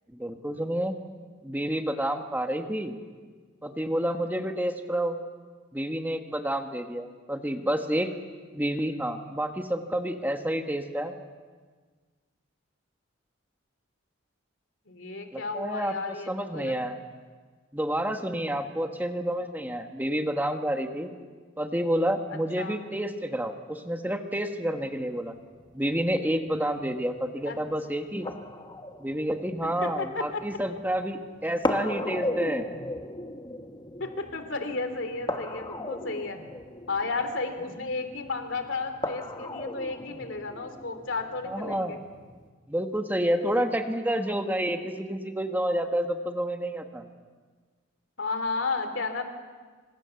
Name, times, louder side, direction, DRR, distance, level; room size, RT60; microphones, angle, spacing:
voice 1, 0.1-0.9 1.4-2.9 3.6-5.2 5.7-8.1 8.5-11.1 15.3-17.0 17.7-21.1 21.6-25.3 25.7-28.3 29.0-32.7 41.4-42.0 42.7-47.0, right 1 dB, 10° right, 5 dB, 1.4 m, -29 dB
voice 2, 14.9-16.8 22.3-22.8 27.5-27.6 29.6-30.4 34.0-36.4 36.9-42.0 48.2-49.2, left 3 dB, 65° left, 7 dB, 3.0 m, -33 dB
sound 1, 24.9-42.5, left 1 dB, 20° left, 1.4 m, -37 dB
26.5 x 26.0 x 7.0 m, 1.5 s
head